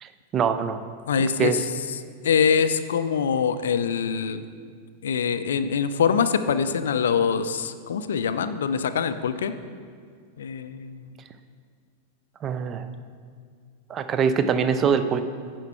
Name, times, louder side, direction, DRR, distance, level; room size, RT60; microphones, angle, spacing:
voice 1, 0.0-0.8 1.4-1.6 12.4-12.9 13.9-15.2, right 6 dB, 30° right, 10 dB, 0.4 m, -23 dB
voice 2, 1.1-1.6 1.9-4.4 5.0-9.5 10.4-11.1, left 6 dB, 65° left, 12 dB, 0.3 m, -24 dB
10.5 x 4.5 x 4.5 m, 2.1 s
figure-of-eight pair, 90°, 0 cm